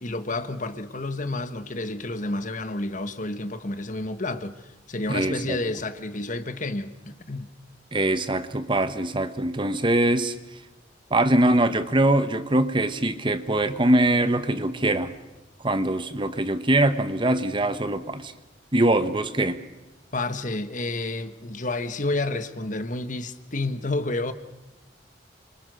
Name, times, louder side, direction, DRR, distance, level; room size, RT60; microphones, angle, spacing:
voice 1, 0.0-7.5 20.1-24.3, left 2 dB, 45° left, 1.5 m, -30 dB
voice 2, 5.1-5.6 7.9-10.3 11.1-15.1 15.6-18.3 18.7-19.6, right 1 dB, 25° right, 1.2 m, -23 dB
28.0 x 25.0 x 6.5 m
head